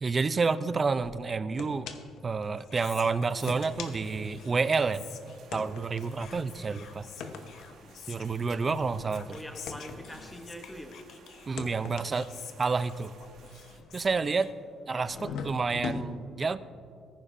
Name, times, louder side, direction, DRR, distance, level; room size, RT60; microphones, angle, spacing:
voice 1, 0.0-1.9 2.2-5.1 5.5-7.1 8.1-9.4 11.5-12.3 12.6-13.1 13.9-14.5 14.9-16.6, right 4 dB, 25° right, 0.3 m, -29 dB
sound 1, 1.0-1.1 1.6-2.2 2.6-2.7 3.3-4.9 5.5-11.0 11.4-14.5 15.0-16.0, left 5 dB, 80° left, 0.8 m, -42 dB
Whispering, 2.2-15.1, left 7 dB, 55° left, 0.6 m, -50 dB
sound 2, 3.5-13.8, right 4 dB, 65° right, 1.5 m, -57 dB
voice 2, 9.3-11.2 14.9-15.7, equal, 5° left, 0.7 m, -45 dB
18.5 x 9.9 x 2.5 m
cardioid pair, 165°, 0 cm